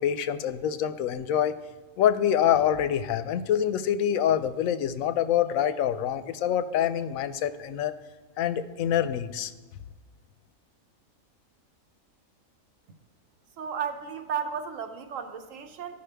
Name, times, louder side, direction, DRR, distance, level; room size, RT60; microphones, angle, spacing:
voice 1, 0.0-1.5 2.0-7.9 8.4-9.5, left 10 dB, 85° left, 11 dB, 1.0 m, -26 dB
voice 2, 13.6-16.0, right 7 dB, 75° right, 7 dB, 1.1 m, -34 dB
14.5 x 5.6 x 3.4 m, 1.3 s
omnidirectional pair, 1.4 m